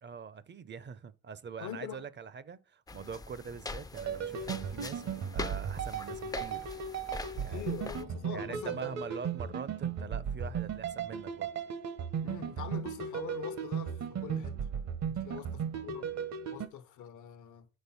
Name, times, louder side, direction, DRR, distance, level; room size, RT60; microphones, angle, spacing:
voice 1, 0.0-6.7 7.4-7.7 8.3-11.5 15.3-15.4, right 6 dB, 35° right, 0.5 m, -44 dB
voice 2, 1.6-2.1 7.3-9.1 12.2-14.6 15.1-16.1 16.5-17.7, left 9 dB, 75° left, 0.8 m, -44 dB
sound 1, 2.9-8.0, left 3 dB, 15° left, 0.3 m, -43 dB
sound 2, 4.0-16.7, right 7 dB, 60° right, 0.9 m, -36 dB
5.3 x 3.8 x 5.6 m
cardioid pair, 90°, 30 cm